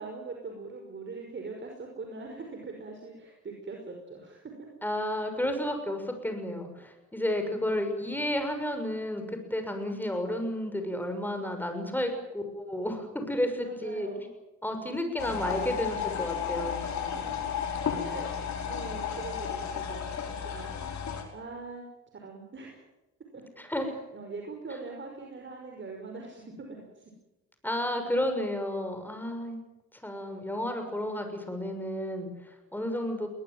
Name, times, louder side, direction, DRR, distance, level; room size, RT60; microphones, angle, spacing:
voice 1, 0.0-4.7 7.5-8.0 13.6-14.3 17.0-17.5 18.0-18.4 18.6-20.7 21.3-21.9 22.1-22.8 23.3-23.4 23.7-27.1, right 3 dB, 40° right, 2 dB, 5.5 m, -42 dB
voice 2, 4.8-14.1 14.6-16.8 23.6-23.9 27.6-29.6 30.0-33.3, left 1 dB, 5° left, 6 dB, 6.3 m, -32 dB
sound 1, 15.2-21.2, left 7 dB, 65° left, 5.3 m, -33 dB
21.0 x 20.0 x 9.3 m, 1.0 s
cardioid pair, 90°, 30 cm